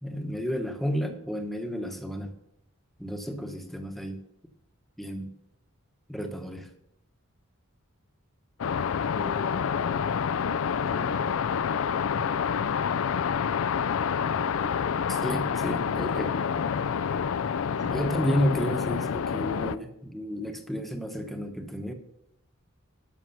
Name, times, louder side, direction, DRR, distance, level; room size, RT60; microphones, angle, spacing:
voice 1, 0.0-2.3 3.0-4.2 5.0-5.3 6.1-6.7 15.1-16.8 17.8-21.9, equal, ahead, 5 dB, 1.0 m, -31 dB
sound 1, 8.6-19.7, left 7 dB, 70° left, 0.4 m, -28 dB
voice 2, 9.1-10.2 10.8-11.3 14.6-14.7 17.8-18.1 21.2-21.3, left 2 dB, 20° left, 4 dB, 0.5 m, -43 dB
13.0 x 6.3 x 5.8 m, 0.82 s
head